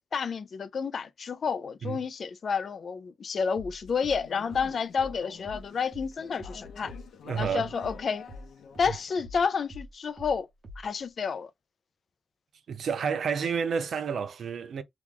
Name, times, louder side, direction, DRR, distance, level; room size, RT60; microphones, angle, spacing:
voice 1, 0.1-6.9 7.4-8.2 8.8-10.5 10.8-11.5, left 6 dB, 45° left, 0.4 m, -30 dB
sound 1, 3.5-8.5 8.7-11.0, left 1 dB, 40° right, 1.2 m, -45 dB
Conversation / Chatter, 3.9-9.2, left 6 dB, 80° left, 0.7 m, -48 dB
voice 2, 7.2-7.7 8.9-9.0 12.7-14.8, right 6 dB, 60° right, 0.5 m, -30 dB
3.0 x 2.4 x 3.6 m
wide cardioid pair, 160°, 0 cm